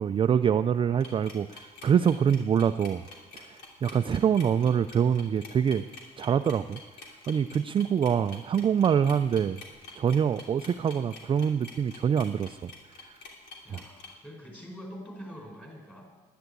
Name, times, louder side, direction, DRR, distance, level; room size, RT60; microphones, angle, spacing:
voice 1, 0.0-3.0 3.3-5.9 6.2-6.8 7.3-9.6 10.0-12.7 13.0-13.2 13.7-13.8, right 8 dB, 30° right, 9 dB, 0.4 m, -25 dB
sound 1, 1.0-14.1, left 3 dB, 90° left, 3.0 m, -47 dB
voice 2, 13.6-16.1, equal, 10° left, 1 dB, 4.7 m, -44 dB
11.0 x 11.0 x 8.4 m, 1.3 s
cardioid pair, 110°, 17 cm